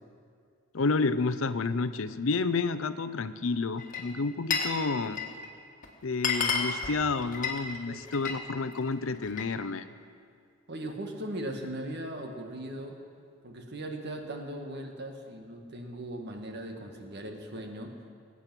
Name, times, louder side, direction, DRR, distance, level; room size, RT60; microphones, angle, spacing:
voice 1, 0.7-5.2 6.0-9.9, left 4 dB, 70° left, 12 dB, 0.6 m, -30 dB
Glass, 3.8-4.8 5.0-5.5 5.8-5.9 6.1-8.4 8.8-9.5, left 5 dB, 40° left, 1.6 m, -31 dB
voice 2, 10.7-13.0 13.4-17.9, right 1 dB, 55° right, 3 dB, 1.6 m, -38 dB
20.0 x 8.4 x 6.1 m, 2.2 s
head